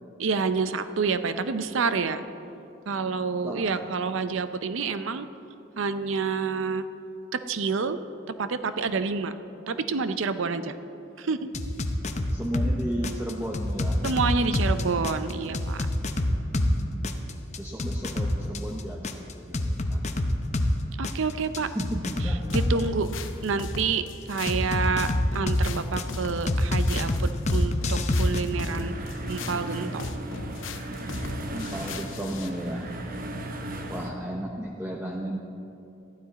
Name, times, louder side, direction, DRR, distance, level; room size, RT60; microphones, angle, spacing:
voice 1, 0.2-2.2 2.9-5.3 5.8-6.8 7.3-8.0 8.4-9.3 9.7-10.7 11.2-11.5 14.0-15.9 21.0-21.7 22.2-23.1 23.4-28.9 29.3-30.1, right 4 dB, 75° right, 11 dB, 0.6 m, -28 dB
voice 2, 3.4-3.9 12.3-14.0 16.6-17.1 17.6-19.1 19.4-19.6 19.9-20.0 21.7-22.6 31.5-32.9 33.9-35.4, right 1 dB, 10° right, -1 dB, 0.7 m, -34 dB
sound 1, 11.5-12.7 13.0-16.7 17.0-20.7 21.0-22.8 24.5-26.0 26.5-28.4, left 1 dB, 35° left, 0.7 m, -25 dB
sound 2, 22.5-32.6, left 3 dB, 70° left, 0.7 m, -38 dB
sound 3, 28.5-34.1, right 1 dB, 45° right, 0.9 m, -36 dB
14.5 x 12.0 x 4.1 m, 2.7 s
head